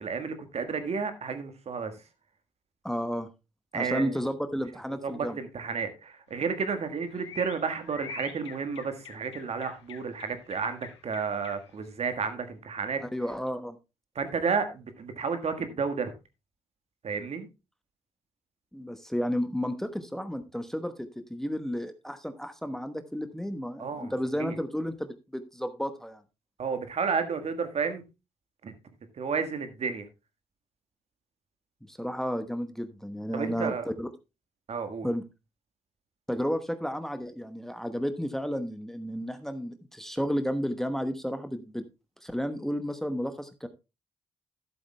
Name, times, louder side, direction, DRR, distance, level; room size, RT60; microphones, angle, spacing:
voice 1, 0.0-2.0 3.7-4.2 5.0-13.0 14.1-16.1 17.0-17.5 23.8-24.1 24.4-24.6 26.6-28.0 28.6-28.7 29.1-30.1 33.3-33.8 34.7-35.1, right 5 dB, 50° right, 8 dB, 1.6 m, -31 dB
voice 2, 2.8-3.3 3.7-5.4 13.0-13.8 18.7-26.2 31.9-34.1 35.0-35.2 36.3-41.8 42.2-43.7, equal, 5° left, 9 dB, 1.1 m, -32 dB
sound 1, 6.3-11.9, left 8 dB, 90° left, 0.6 m, -47 dB
12.5 x 11.5 x 2.2 m, 0.26 s
hypercardioid pair, 40°, 14 cm